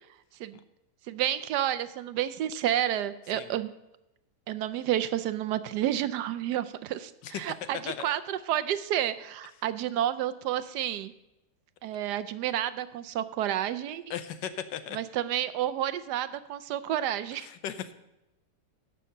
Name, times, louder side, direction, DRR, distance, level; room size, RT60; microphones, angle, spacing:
voice 1, 1.1-3.7 4.5-11.1 11.8-14.0 14.9-17.5, right 11 dB, 75° right, 12 dB, 1.1 m, -30 dB
voice 2, 14.1-15.0 17.4-17.9, left 9 dB, 80° left, 11 dB, 1.4 m, -37 dB
11.0 x 6.4 x 6.5 m, 0.94 s
omnidirectional pair, 1.9 m